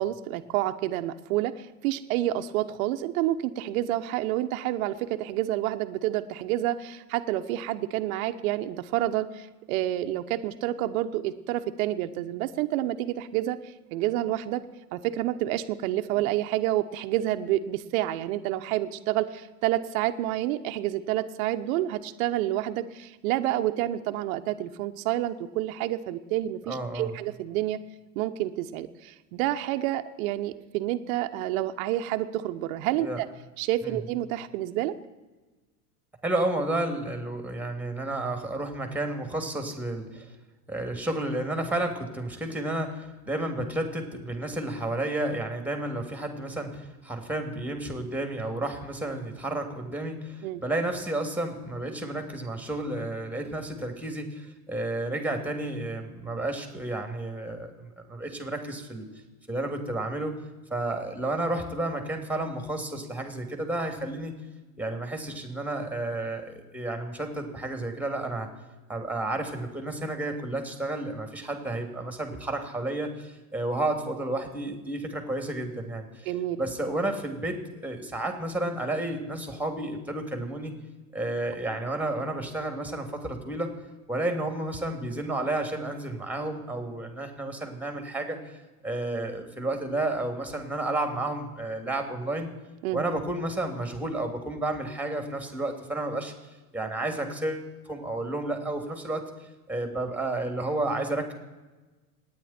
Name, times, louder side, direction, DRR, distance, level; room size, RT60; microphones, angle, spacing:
voice 1, 0.0-14.6 14.9-27.8 28.1-33.3 33.6-35.0 50.4-50.6 76.3-76.6 92.8-93.0, right 14 dB, 60° right, 7 dB, 1.1 m, -29 dB
voice 2, 26.7-27.1 33.0-33.2 33.8-34.0 36.2-40.3 40.7-59.0 59.5-60.3 60.7-64.3 64.8-68.5 68.9-76.3 76.6-80.7 81.1-83.7 84.1-92.5 92.9-96.3 96.7-99.2 99.7-101.3, right 2 dB, 5° right, 5 dB, 3.0 m, -31 dB
27.0 x 9.9 x 4.4 m, 1.2 s
hypercardioid pair, 95°, 46 cm